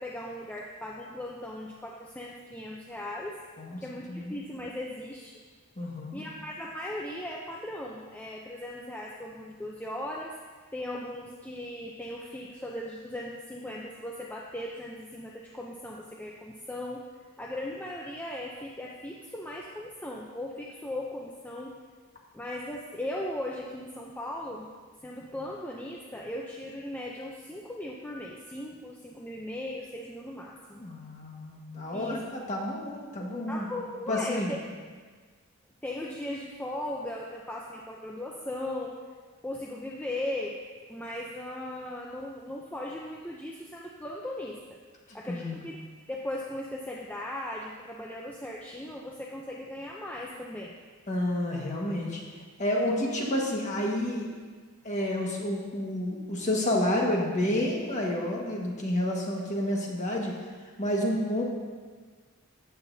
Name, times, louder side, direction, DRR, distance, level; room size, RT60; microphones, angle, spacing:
voice 1, 0.0-3.4 3.8-5.4 6.1-10.4 10.7-17.0 17.4-21.7 22.3-24.7 25.0-30.8 31.9-32.2 33.5-34.4 35.8-38.9 39.4-40.6 40.9-44.8 45.1-45.8 46.1-50.7, left 1 dB, 5° left, -2 dB, 0.5 m, -38 dB
voice 2, 5.8-6.2 30.8-33.7 34.1-34.6 45.1-45.6 51.1-54.3 54.8-60.5 60.8-61.4, left 1 dB, 30° left, -2 dB, 1.6 m, -30 dB
13.5 x 9.1 x 2.7 m, 1.5 s
head